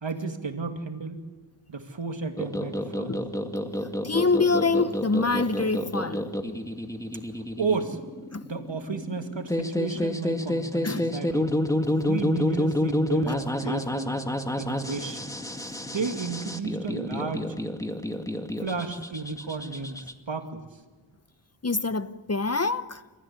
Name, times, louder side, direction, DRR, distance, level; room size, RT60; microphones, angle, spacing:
voice 1, 0.0-1.2 1.7-3.2 7.6-8.0 8.4-11.5 11.9-14.2 14.6-15.3 15.8-17.6 18.6-20.6, right 4 dB, 65° right, 2.6 m, -32 dB
sound 1, 2.4-20.1, left 1 dB, 5° left, 2.1 m, -29 dB
voice 2, 4.0-6.2 8.3-8.4 9.9-10.0 10.8-11.1 13.6-13.7 21.6-23.0, left 3 dB, 30° left, 0.9 m, -25 dB
28.0 x 15.0 x 9.7 m
cardioid pair, 40°, 48 cm